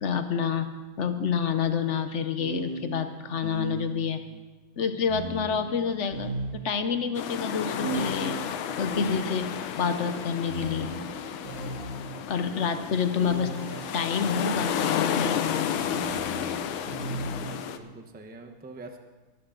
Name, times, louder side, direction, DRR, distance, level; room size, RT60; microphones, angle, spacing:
voice 1, 0.0-4.2 4.8-10.9 12.3-13.6 13.9-15.8, left 6 dB, 60° left, 9 dB, 0.7 m, -28 dB
sound 1, 1.4-1.5 2.4-4.2 5.1-7.0 7.8-12.3 13.2-17.7, right 3 dB, 45° right, 4.3 m, -38 dB
voice 2, 5.4-5.8 11.3-12.2 12.5-12.8 17.0-19.0, right 2 dB, 10° right, 4 dB, 0.5 m, -47 dB
sound 2, 7.1-17.8, left 9 dB, 80° left, 1.6 m, -32 dB
23.0 x 11.5 x 3.9 m, 1.2 s
omnidirectional pair, 2.3 m